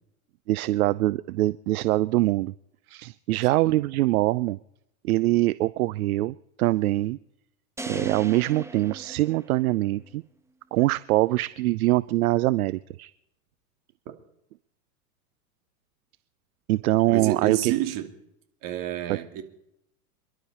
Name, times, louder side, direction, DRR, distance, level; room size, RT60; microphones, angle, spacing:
voice 1, 0.5-2.5 2.9-4.6 5.0-7.2 7.9-10.2 10.7-13.1 16.7-17.7 19.1-19.2, right 17 dB, 70° right, 18 dB, 0.6 m, -23 dB
voice 2, 3.4-3.8 17.1-18.1 18.6-19.4, right 12 dB, 45° right, 6 dB, 2.7 m, -29 dB
sound 1, 7.8-10.1, right 2 dB, 5° right, 1.1 m, -37 dB
28.0 x 11.5 x 4.3 m, 0.83 s
hypercardioid pair, 115°, 45 cm